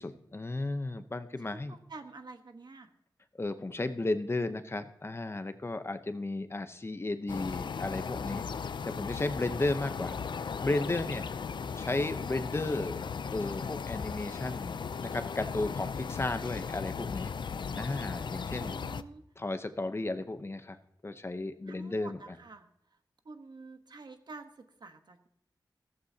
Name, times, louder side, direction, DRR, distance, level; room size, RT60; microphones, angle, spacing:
voice 1, 0.0-1.8 3.4-8.4 8.9-10.2 10.6-11.3 11.7-13.0 13.3-17.3 17.7-18.7 19.4-20.8 21.0-22.2, left 2 dB, 30° left, 9 dB, 0.8 m, -34 dB
voice 2, 1.4-2.9 18.6-19.2 21.7-23.0 23.2-25.3, right 3 dB, 65° right, 7 dB, 1.2 m, -49 dB
sound 1, 7.3-19.0, left 6 dB, 80° left, 0.5 m, -37 dB
15.0 x 14.5 x 2.8 m, 0.77 s
wide cardioid pair, 95°, 8 cm